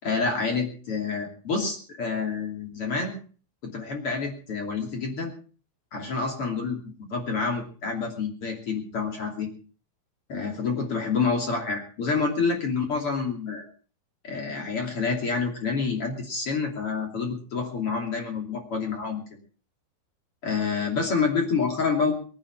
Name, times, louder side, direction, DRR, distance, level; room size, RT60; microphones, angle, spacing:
voice 1, 0.0-3.2 3.6-5.3 5.9-9.5 10.3-13.6 14.2-19.2 20.4-22.1, left 4 dB, 40° left, 1 dB, 3.4 m, -28 dB
22.5 x 10.5 x 4.9 m, 0.41 s
omnidirectional pair, 4.4 m